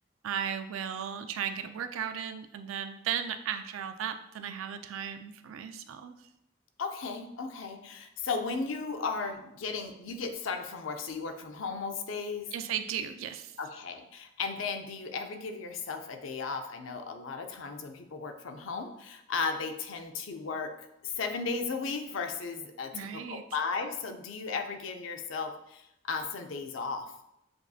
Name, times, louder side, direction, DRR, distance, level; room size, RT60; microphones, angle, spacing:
voice 1, 0.2-6.1 12.5-13.6 22.9-23.4, right 8 dB, 90° right, 8 dB, 0.3 m, -35 dB
voice 2, 6.8-12.5 13.6-27.1, left 4 dB, 80° left, 6 dB, 0.5 m, -35 dB
7.7 x 2.7 x 2.4 m, 0.84 s
head